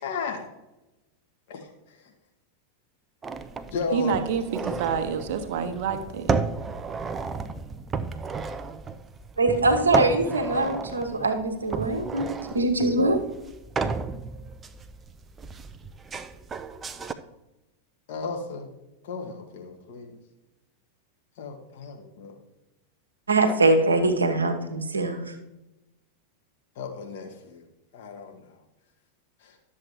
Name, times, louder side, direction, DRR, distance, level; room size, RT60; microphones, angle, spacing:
voice 1, 0.0-0.5 1.5-1.6 1.9-2.1 3.7-4.4 18.1-18.7 19.0-20.2 21.4-22.4 26.7-27.6 27.9-28.5 29.4-29.6, left 4 dB, 55° left, 2 dB, 1.5 m, -34 dB
sound 1, 3.2-17.1, right 4 dB, 20° right, 0.5 m, -33 dB
voice 2, 3.9-6.3, right 7 dB, 50° right, 8 dB, 1.1 m, -28 dB
voice 3, 9.4-13.2 23.3-25.2, right 2 dB, 75° right, 5 dB, 1.1 m, -23 dB
12.0 x 7.4 x 3.1 m, 0.97 s
figure-of-eight pair, 90°, 0 cm